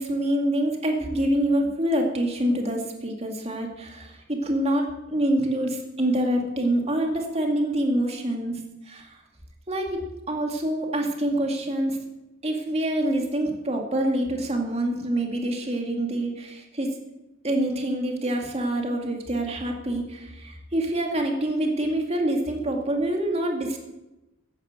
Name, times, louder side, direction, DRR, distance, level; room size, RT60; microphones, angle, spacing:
voice 1, 0.0-8.6 8.9-9.2 9.7-12.0 12.4-17.0 17.4-23.8, right 1 dB, 30° right, 2 dB, 2.4 m, -26 dB
15.0 x 10.0 x 6.6 m, 0.98 s
head